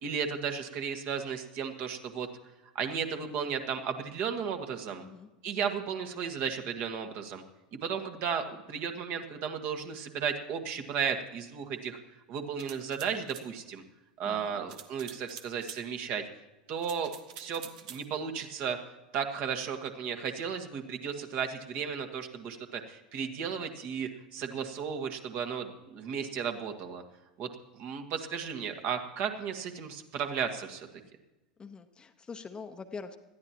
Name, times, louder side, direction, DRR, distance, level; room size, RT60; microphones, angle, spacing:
voice 1, 0.0-2.3 2.8-5.0 5.4-7.4 7.7-12.0 12.3-13.8 14.2-16.2 16.7-18.8 19.1-27.0 27.4-27.5 27.8-30.9, right 7 dB, 45° right, 5 dB, 1.7 m, -34 dB
voice 2, 5.0-5.3 14.2-14.6 31.6-33.2, left 5 dB, 20° left, 7 dB, 1.0 m, -44 dB
sound 1, 12.6-13.5 14.7-15.8 16.8-18.1, right 9 dB, 60° right, 1.3 m, -47 dB
20.0 x 13.5 x 2.9 m, 1.0 s
figure-of-eight pair, 85°, 5 cm